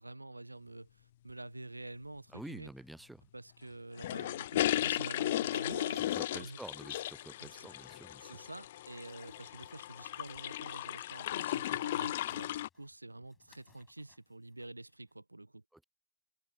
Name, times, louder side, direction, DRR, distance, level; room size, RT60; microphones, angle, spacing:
voice 1, 0.0-2.7 3.3-6.6 7.4-7.7 8.2-15.6, right 2 dB, 85° right, 1.2 m, -48 dB
voice 2, 2.3-3.3 4.8-5.1 5.5-5.6 5.9-8.4 15.7-15.8, right 1 dB, 5° right, 0.7 m, -49 dB
sound 1, 4.0-12.7, left 13 dB, 65° left, 0.6 m, -36 dB
sound 2, 5.7-15.1, left 7 dB, 25° left, 6.0 m, -71 dB
figure-of-eight pair, 80°, 0 cm